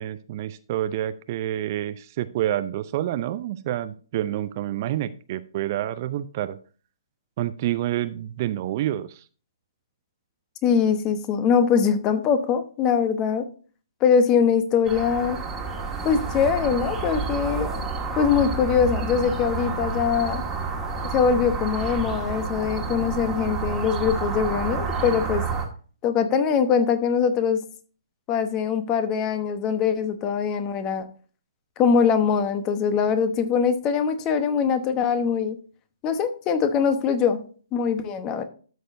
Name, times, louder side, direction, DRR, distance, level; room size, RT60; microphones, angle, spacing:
voice 1, 0.0-6.6 7.4-9.2, right 13 dB, 40° right, 14 dB, 0.5 m, -28 dB
voice 2, 10.6-13.5 14.0-15.4 16.0-17.8 18.2-20.4 21.0-25.4 26.0-27.6 28.3-31.1 31.8-35.6 36.0-37.4 37.7-38.4, left 6 dB, 25° left, 10 dB, 1.0 m, -22 dB
sound 1, 14.8-25.6, right 4 dB, 10° right, 1.7 m, -29 dB
12.5 x 6.4 x 2.6 m, 0.39 s
figure-of-eight pair, 135°, 2 cm